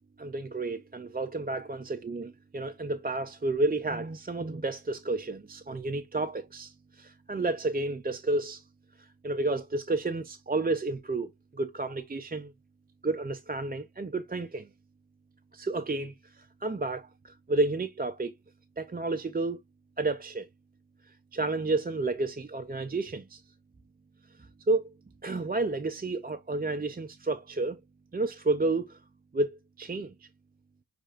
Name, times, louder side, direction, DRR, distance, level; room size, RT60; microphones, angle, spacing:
voice 1, 0.2-8.6 9.0-12.5 13.0-14.7 15.5-18.3 18.8-19.6 20.0-20.5 21.3-23.4 24.7-24.9 25.2-27.8 28.1-29.0 29.3-30.3, right 2 dB, 20° right, 0.5 m, -31 dB
6.3 x 3.3 x 2.4 m
wide cardioid pair, 85°, 41 cm